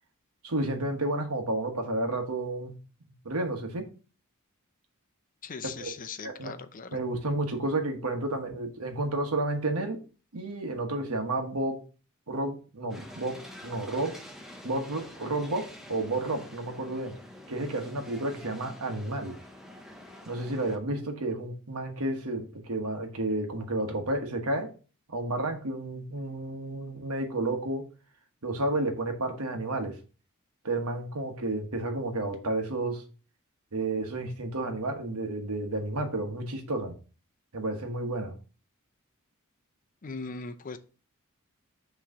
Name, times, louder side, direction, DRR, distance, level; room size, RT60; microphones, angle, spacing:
voice 1, 0.4-2.7 3.2-3.9 5.8-5.9 6.2-6.5 6.9-10.0 10.3-11.8 12.3-14.2 14.6-17.1 17.5-19.4 20.3-24.7 25.1-27.8 28.4-29.9 30.6-33.0 33.7-36.9 37.5-38.3, right 2 dB, 75° right, 1.2 m, -31 dB
voice 2, 5.4-7.0 40.0-40.8, left 4 dB, 40° left, 0.5 m, -39 dB
sound 1, 12.9-20.8, left 1 dB, ahead, 0.8 m, -47 dB
6.0 x 3.1 x 5.3 m
head